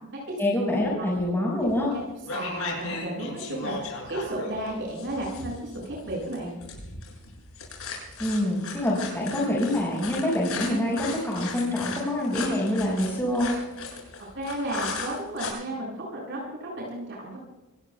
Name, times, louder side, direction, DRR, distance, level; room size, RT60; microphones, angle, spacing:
voice 1, 0.4-1.9 8.2-13.5, left 1 dB, 10° left, -4 dB, 5.6 m, -26 dB
sound 1, 1.7-1.9 2.3-15.5, left 4 dB, 70° left, 7.3 m, -36 dB
voice 2, 2.3-3.7 4.1-6.5 14.3-17.4, right 1 dB, 55° right, -4 dB, 7.3 m, -33 dB
27.0 x 19.0 x 2.4 m, 1.1 s
head